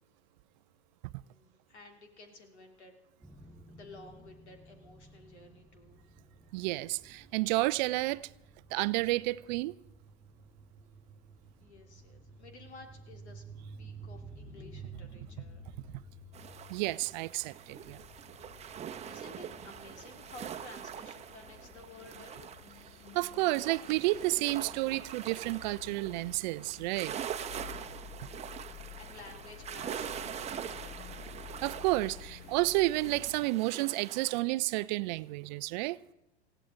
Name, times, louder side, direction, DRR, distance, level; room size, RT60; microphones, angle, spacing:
voice 1, 1.2-3.0 3.4-6.0 11.6-13.4 13.8-15.7 18.4-22.5 28.2-31.2, left 2 dB, 80° left, 3.1 m, -53 dB
sound 1, 3.2-20.7, right 3 dB, ahead, 4.1 m, -53 dB
voice 2, 6.5-8.3 8.7-9.7 16.7-18.0 23.1-27.1 31.6-36.0, right 20 dB, 45° right, 0.5 m, -31 dB
sound 2, 16.3-34.4, right 9 dB, 20° right, 0.9 m, -44 dB
sound 3, 17.7-33.5, left 9 dB, 30° left, 0.7 m, -51 dB
20.5 x 15.5 x 3.8 m
hypercardioid pair, 100°, 33 cm